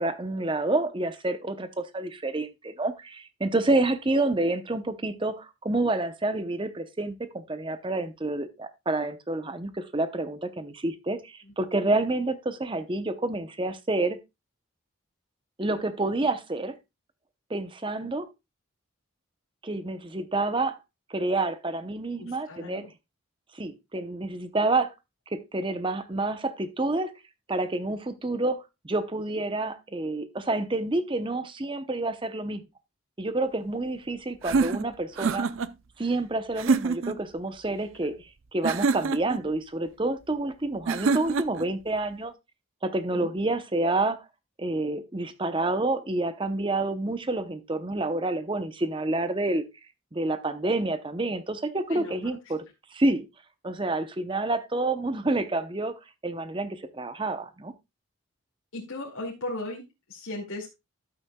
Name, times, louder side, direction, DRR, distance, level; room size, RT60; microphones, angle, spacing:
voice 1, 0.0-14.2 15.6-16.7 17.5-18.3 19.6-20.8 21.1-22.8 23.5-24.9 25.3-27.1 27.5-32.6 33.2-35.5 36.0-38.2 38.5-42.3 42.8-44.2 44.6-49.6 50.1-52.6 52.9-53.2 53.6-55.9 56.2-57.7, right 2 dB, 25° right, 0.7 m, -28 dB
voice 2, 22.2-22.9 43.1-43.3 51.9-52.2 58.7-60.7, left 2 dB, 80° left, 2.2 m, -37 dB
sound 1, 34.4-35.7 36.6-37.2 38.6-39.4 40.9-41.7, right 4 dB, 70° right, 0.5 m, -26 dB
12.0 x 8.3 x 2.3 m
head